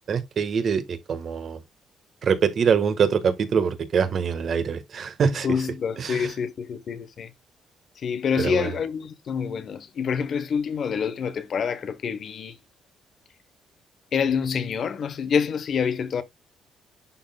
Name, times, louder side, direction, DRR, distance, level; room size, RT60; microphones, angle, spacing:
voice 1, 0.1-1.6 2.2-5.5 6.0-6.3 8.4-8.7, right 6 dB, 55° right, 1.4 m, -24 dB
voice 2, 5.3-7.3 8.0-12.6 14.1-16.2, left 6 dB, 55° left, 0.9 m, -27 dB
11.0 x 3.7 x 2.2 m
cardioid pair, 90°, 0 cm